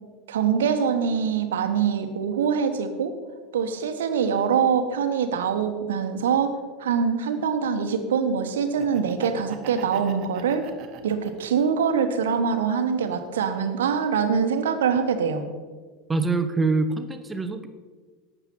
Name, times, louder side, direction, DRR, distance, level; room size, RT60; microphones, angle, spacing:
voice 1, 0.3-3.1 3.5-10.7 11.0-15.5, right 6 dB, 65° right, 8 dB, 1.1 m, -24 dB
Laughter, 8.6-11.8 12.3-13.4, right 9 dB, 45° right, 1.2 m, -42 dB
voice 2, 16.1-17.7, right 3 dB, 15° right, 8 dB, 0.8 m, -24 dB
12.0 x 8.1 x 5.9 m, 1.4 s
figure-of-eight pair, 75°, 0 cm